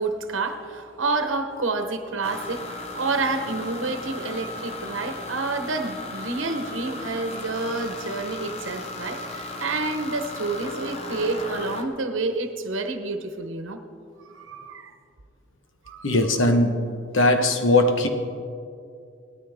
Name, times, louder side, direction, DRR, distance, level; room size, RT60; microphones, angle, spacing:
voice 1, 0.0-13.8 14.2-14.9 15.8-16.1, right 3 dB, 90° right, 6 dB, 0.9 m, -29 dB
sound 1, 2.2-11.8, left 2 dB, 35° left, 0.9 m, -36 dB
voice 2, 16.0-18.1, left 1 dB, 85° left, 6 dB, 1.2 m, -20 dB
18.0 x 13.0 x 3.6 m, 2.5 s
head